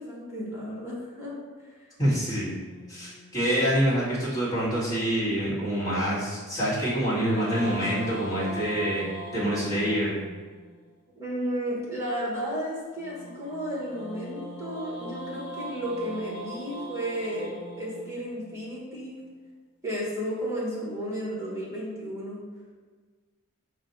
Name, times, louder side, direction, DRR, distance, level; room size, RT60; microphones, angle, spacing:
voice 1, 0.0-1.3 1.6-1.8 11.2-19.2 19.8-22.4, equal, 15° right, -6 dB, 1.2 m, -33 dB
sound 1, 2.0-4.4 6.7-10.9 13.0-19.2, right 1 dB, 55° left, 0.8 m, -41 dB
voice 2, 2.0-2.5 2.9-9.0 9.3-10.2, equal, 15° left, -10 dB, 1.4 m, -26 dB
5.1 x 2.2 x 4.0 m, 1.5 s
head